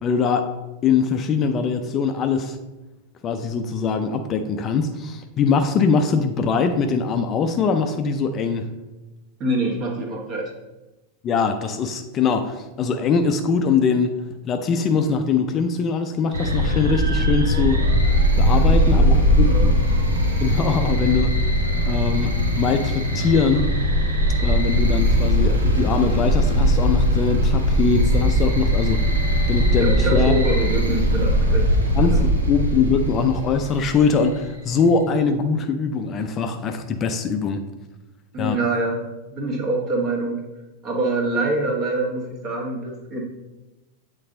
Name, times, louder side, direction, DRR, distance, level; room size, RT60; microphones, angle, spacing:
voice 1, 0.0-0.5 0.8-2.6 3.2-8.7 11.2-14.1 14.4-17.8 18.4-19.5 20.4-21.5 21.9-23.7 24.4-29.0 29.5-30.4 32.0-37.6 38.4-38.6, left 5 dB, 30° left, 6 dB, 0.5 m, -22 dB
voice 2, 9.4-10.5 18.5-19.7 29.8-31.7 32.1-32.2 38.3-40.4 40.8-43.2, right 1 dB, 35° right, 1 dB, 1.5 m, -25 dB
sound 1, 16.3-34.3, equal, 75° right, 1.2 m, -20 dB
8.5 x 4.0 x 3.8 m, 1.1 s
figure-of-eight pair, 90°, 0 cm